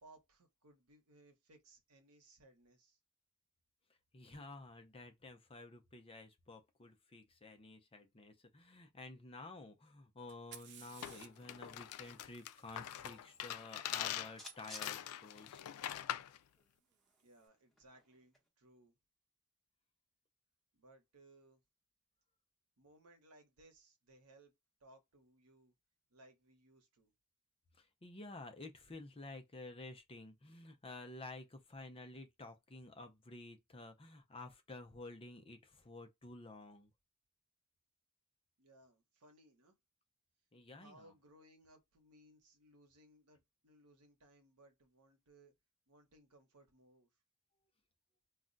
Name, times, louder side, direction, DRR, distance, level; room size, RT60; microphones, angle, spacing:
voice 1, 0.0-3.0 17.2-19.0 20.7-21.6 22.8-24.5 24.8-25.7 26.1-27.1 38.6-39.8 40.8-45.5 45.9-47.1, right 1 dB, 85° right, 1.0 m, -64 dB
voice 2, 4.1-15.6 27.8-36.9 40.5-41.1, left 2 dB, 25° left, 0.6 m, -52 dB
Fire, 10.3-14.1 16.0-16.1 16.9-17.3, right 9 dB, 50° right, 0.4 m, -59 dB
sound 1, 11.0-16.4, left 12 dB, 80° left, 0.3 m, -43 dB
sound 2, 13.5-15.9 16.2-16.3 16.6-18.5, left 1 dB, ahead, 1.0 m, -56 dB
2.4 x 2.2 x 3.8 m
head